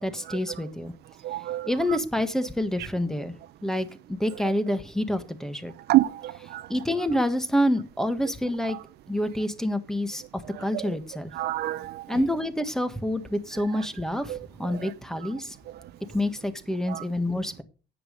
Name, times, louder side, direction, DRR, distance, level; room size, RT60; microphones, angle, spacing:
voice 1, 0.0-0.9 1.7-3.3 3.6-5.7 6.7-8.8 9.1-10.2 10.6-11.3 12.1-15.5 16.1-17.6, left 1 dB, 5° left, 1.6 m, -27 dB
voice 2, 1.2-1.7 5.9-6.6 11.4-12.0 14.3-14.4 16.9-17.0, right 16 dB, 75° right, 0.8 m, -26 dB
10.0 x 8.7 x 5.2 m
cardioid pair, 110°, 17 cm